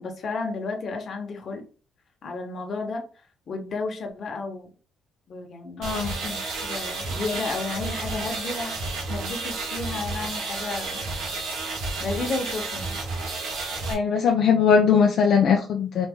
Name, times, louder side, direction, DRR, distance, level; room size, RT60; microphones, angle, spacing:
voice 1, 0.0-1.6 2.2-3.0 3.5-4.7 5.3-8.8 9.1-11.0 12.0-12.9, left 3 dB, 55° left, 3 dB, 1.3 m, -32 dB
sound 1, 5.8-13.9, right 3 dB, 85° right, 1.9 m, -31 dB
voice 2, 13.9-16.1, left 6 dB, 70° left, 2 dB, 0.6 m, -20 dB
4.2 x 2.9 x 3.6 m, 0.38 s
cardioid pair, 90°, 0 cm